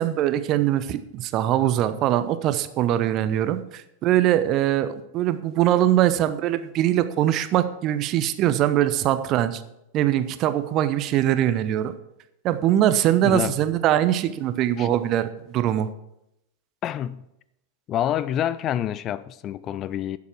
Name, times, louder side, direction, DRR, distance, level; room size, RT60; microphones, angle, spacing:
voice 1, 0.0-9.6 9.9-11.9 12.4-15.9, right 12 dB, 35° right, 0.6 m, -22 dB
voice 2, 13.2-13.6 14.8-14.9 16.8-17.3 17.9-20.2, left 11 dB, 30° left, 0.3 m, -27 dB
11.0 x 7.1 x 4.7 m
figure-of-eight pair, 90°, 0 cm